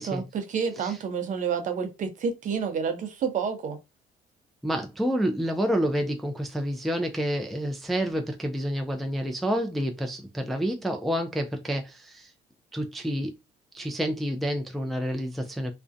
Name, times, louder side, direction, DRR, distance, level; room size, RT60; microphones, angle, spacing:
voice 1, 0.0-3.8, right 6 dB, 50° right, 0.6 m, -29 dB
voice 2, 4.6-12.3 12.7-13.4 13.7-15.7, equal, ahead, 0.3 m, -29 dB
2.4 x 2.1 x 2.5 m
cardioid pair, 110°, 17 cm